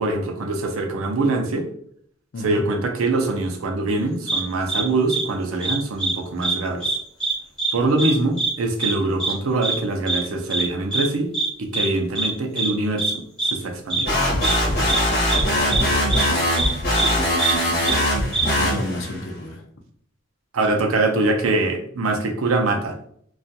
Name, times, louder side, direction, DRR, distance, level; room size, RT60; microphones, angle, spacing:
voice 1, 0.0-1.7 2.4-6.8 7.7-11.3 11.6-13.2 13.5-14.1 20.5-22.9, right 2 dB, 90° right, 3 dB, 0.5 m, -23 dB
sound 1, 4.3-4.4 4.7-4.8 5.1-5.2 5.6-6.1 6.4-6.5 6.8-7.3 7.6-7.7 8.0-8.1 8.4-8.5 8.8-8.9 9.2-9.3 9.6-9.7 10.1-10.2 10.5-10.6 10.9-11.0 11.3-11.5 11.7-11.9 12.1-12.3 12.5-12.7 13.0-13.1 13.4-13.5 13.9-14.0 14.4-14.5 14.9-15.0 15.3-15.4 15.7-15.8 16.1-16.2 16.6-16.7 17.0-17.1 17.4-17.5 17.8-18.0 18.3-18.4, right 3 dB, 5° left, 0.6 m, -23 dB
sound 2, 14.0-19.2, left 1 dB, 50° left, 1.0 m, -21 dB
voice 2, 15.2-16.6 18.6-19.6, left 1 dB, 65° left, 2 dB, 0.5 m, -33 dB
2.7 x 2.3 x 2.2 m, 0.64 s
head